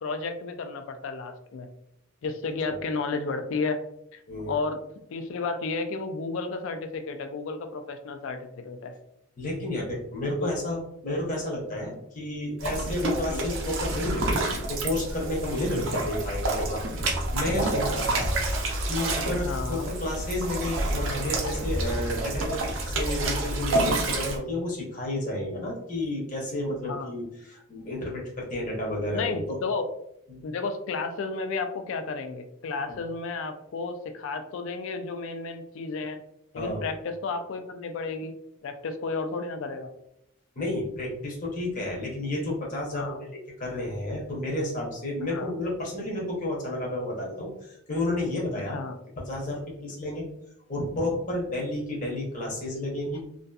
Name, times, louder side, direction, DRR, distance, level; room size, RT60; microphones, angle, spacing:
voice 1, 0.0-1.7 2.2-3.8 4.1-4.2 4.5-4.8 5.1-8.9 10.4-10.5 13.2-13.5 19.4-19.9 26.9-27.2 29.1-29.9 30.4-36.2 36.5-38.3 38.6-39.9 43.0-43.2 45.3-45.5 48.7-48.9, left 4 dB, 65° left, 8 dB, 0.3 m, -32 dB
voice 2, 9.4-16.8 17.3-18.3 18.9-29.6 30.3-30.4 32.9-33.0 36.6-36.9 40.6-43.1 43.6-48.8 49.2-50.2 50.7-53.2, left 1 dB, 35° left, -3 dB, 0.7 m, -31 dB
sound 1, 12.6-24.4, right 2 dB, 60° right, 0.5 m, -28 dB
2.6 x 2.4 x 2.2 m, 0.77 s
head